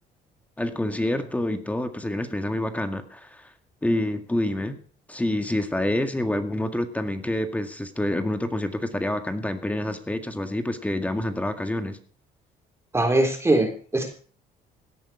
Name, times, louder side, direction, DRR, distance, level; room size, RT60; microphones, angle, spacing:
voice 1, 0.6-3.5 3.8-4.8 5.1-12.0, left 1 dB, 10° left, 7 dB, 1.9 m, -27 dB
voice 2, 12.9-14.1, right 2 dB, 15° right, 3 dB, 3.6 m, -21 dB
17.5 x 10.5 x 4.9 m, 0.42 s
cardioid pair, 110°, 17 cm